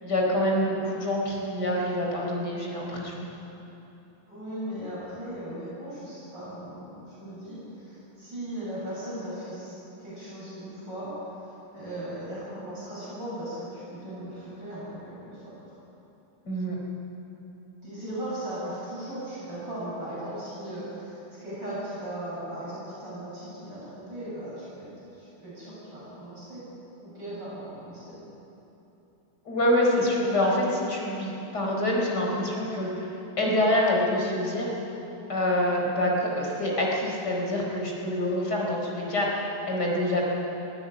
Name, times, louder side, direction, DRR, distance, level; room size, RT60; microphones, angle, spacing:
voice 1, 0.0-3.3 16.5-16.8 29.4-33.1 33.4-34.7 35.3-40.2, left 1 dB, 50° left, -2 dB, 5.0 m, -26 dB
voice 2, 4.3-11.4 11.7-15.8 17.8-24.9 25.1-26.6 27.0-28.2 39.9-40.0, right 1 dB, 55° right, -9 dB, 8.3 m, -38 dB
22.5 x 16.0 x 9.0 m, 3.0 s
omnidirectional pair, 2.3 m